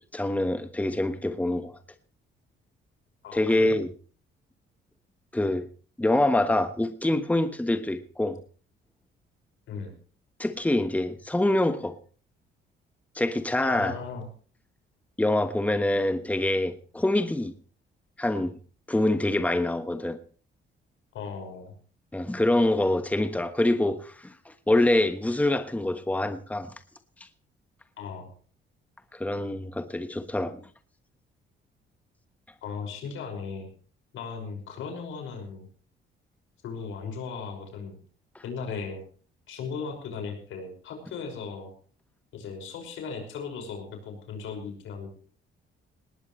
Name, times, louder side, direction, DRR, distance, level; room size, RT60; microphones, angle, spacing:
voice 1, 0.0-1.7 3.3-3.9 5.3-5.7 6.0-8.4 10.4-11.9 13.1-13.9 15.2-17.5 18.2-18.5 18.9-20.2 22.1-26.7 29.1-30.6, left 1 dB, 5° left, 1.3 m, -25 dB
voice 2, 3.2-3.8 9.7-9.9 13.6-14.3 21.1-21.7 28.0-28.3 32.6-33.7 34.1-35.7 36.6-38.0 38.4-39.0 39.5-41.7 42.3-45.1, left 5 dB, 85° left, 5.6 m, -37 dB
19.0 x 19.0 x 3.2 m
cardioid pair, 90°, 20 cm